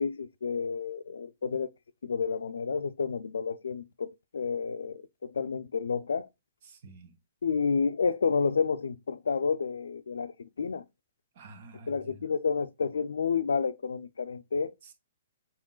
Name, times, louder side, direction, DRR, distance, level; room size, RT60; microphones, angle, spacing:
voice 1, 0.0-1.7 2.0-6.3 7.4-10.8 11.9-14.7, left 5 dB, 85° left, 0.4 m, -30 dB
voice 2, 6.6-7.1 11.3-12.3 14.8-14.9, right 2 dB, 55° right, 0.8 m, -50 dB
5.6 x 3.7 x 2.3 m
hypercardioid pair, 140°, 0 cm